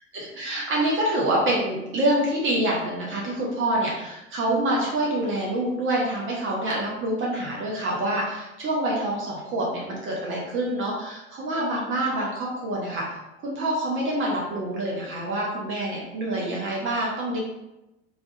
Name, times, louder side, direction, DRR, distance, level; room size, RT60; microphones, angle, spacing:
voice 1, 0.1-13.0 13.4-17.4, right 1 dB, 35° right, -4 dB, 0.6 m, -26 dB
2.3 x 2.1 x 2.7 m, 0.95 s
figure-of-eight pair, 70°, 35 cm